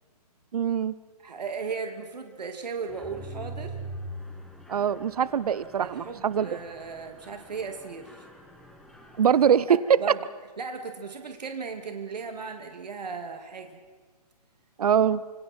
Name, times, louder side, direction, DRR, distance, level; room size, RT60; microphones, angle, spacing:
voice 1, 0.5-0.9 4.7-6.5 9.2-10.0 14.8-15.2, right 8 dB, 65° right, 18 dB, 0.8 m, -23 dB
voice 2, 1.2-3.8 5.8-8.3 9.7-10.2 10.6-13.8, right 5 dB, 80° right, 4 dB, 2.5 m, -36 dB
Mechanisms, 2.9-9.6, right 1 dB, ahead, 1.6 m, -43 dB
29.5 x 26.5 x 4.5 m, 1.5 s
hypercardioid pair, 160°, 21 cm